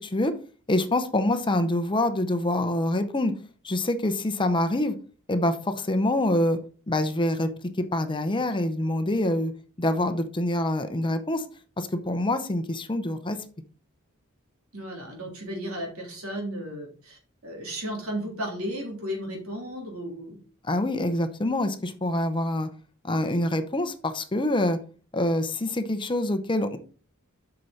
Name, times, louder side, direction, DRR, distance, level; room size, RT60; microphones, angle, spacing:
voice 1, 0.0-0.3 0.7-3.3 3.6-4.9 5.3-6.6 6.9-7.5 7.8-9.5 9.8-11.4 11.8-13.4 20.6-22.7 23.0-24.8 25.1-26.8, left 1 dB, 20° left, 8 dB, 0.7 m, -25 dB
voice 2, 14.7-20.4, equal, 75° right, 0 dB, 3.3 m, -34 dB
8.2 x 5.9 x 4.2 m, 0.40 s
head